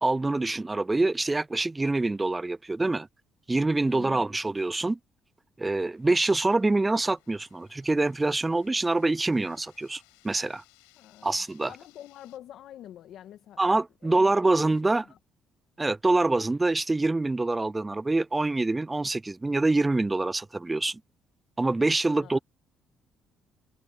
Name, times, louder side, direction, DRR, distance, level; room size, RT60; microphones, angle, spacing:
voice 1, 0.0-3.1 3.5-5.0 5.6-10.6 11.2-11.7 13.6-15.0 15.8-21.0 21.6-22.4, right 2 dB, 20° right, 0.4 m, -25 dB
voice 2, 3.9-4.3 11.0-15.2 22.1-22.4, left 11 dB, 70° left, 1.8 m, -47 dB
sound 1, 5.9-12.4, left 32 dB, 90° left, 7.4 m, -63 dB
supercardioid pair, 65°, 0 cm